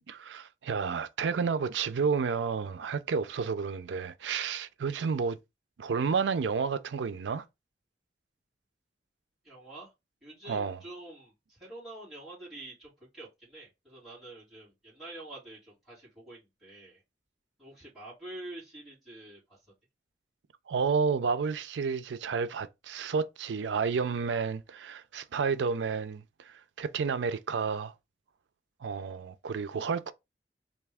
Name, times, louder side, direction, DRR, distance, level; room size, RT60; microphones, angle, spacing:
voice 1, 0.1-5.4 5.8-7.4 10.5-10.8 20.7-27.9 28.8-30.1, right 5 dB, 90° right, 0.4 m, -31 dB
voice 2, 9.4-9.9 10.2-17.0 17.6-19.6, right 2 dB, ahead, 2.2 m, -47 dB
3.4 x 2.7 x 3.4 m
head